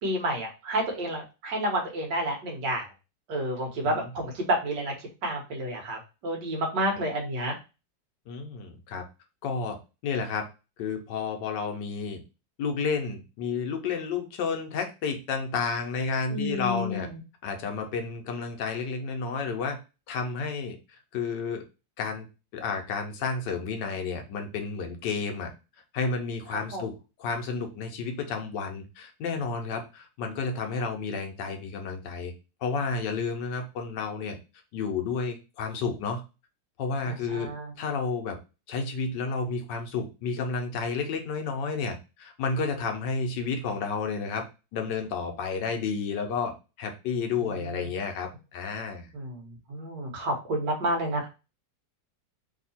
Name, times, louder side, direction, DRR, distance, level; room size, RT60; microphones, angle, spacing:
voice 1, 0.0-2.9 3.3-7.5 16.3-17.2 26.5-26.8 37.0-37.7 47.4-47.9 49.1-51.3, right 1 dB, 70° right, 1 dB, 1.7 m, -30 dB
voice 2, 8.3-9.0 9.4-9.8 10.0-10.4 10.8-12.2 12.6-17.1 17.4-19.8 20.1-20.8 21.1-21.6 22.0-22.3 22.5-25.5 25.9-32.3 32.6-34.4 34.7-36.2 36.8-37.5 37.8-38.4 38.7-44.4 44.7-46.5 46.8-49.1, left 5 dB, 70° left, 4 dB, 1.3 m, -31 dB
3.6 x 2.8 x 4.1 m, 0.30 s
omnidirectional pair, 2.0 m